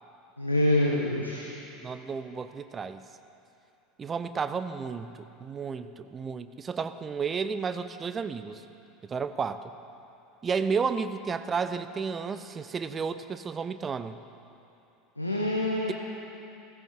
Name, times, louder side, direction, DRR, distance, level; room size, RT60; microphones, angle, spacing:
voice 1, 0.4-1.5 15.2-15.9, left 1 dB, 90° left, -2 dB, 1.2 m, -26 dB
voice 2, 1.8-3.0 4.0-8.6 9.0-9.7 10.4-14.2, right 5 dB, 25° right, 12 dB, 0.7 m, -32 dB
17.0 x 15.5 x 4.5 m, 2.8 s
figure-of-eight pair, 75°, 0 cm